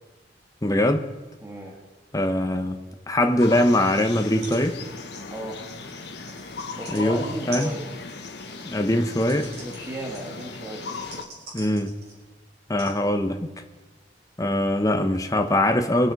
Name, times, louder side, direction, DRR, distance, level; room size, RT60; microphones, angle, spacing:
voice 1, 0.6-1.0 2.1-2.8 3.1-4.8 6.9-7.7 8.6-9.5 11.5-11.9 12.7-13.5 14.4-16.1, left 1 dB, 20° left, 6 dB, 1.0 m, -22 dB
voice 2, 1.4-1.7 5.3-5.6 6.8-7.8 9.6-11.3, right 1 dB, 15° right, -1 dB, 1.9 m, -35 dB
sound 1, 3.4-11.2, left 4 dB, 65° left, 1.2 m, -38 dB
sound 2, 4.4-4.6 4.9-7.0 7.5-12.3 12.8-12.9 13.7-13.8, right 2 dB, 60° right, 5.7 m, -43 dB
25.0 x 8.7 x 4.9 m, 1.2 s
head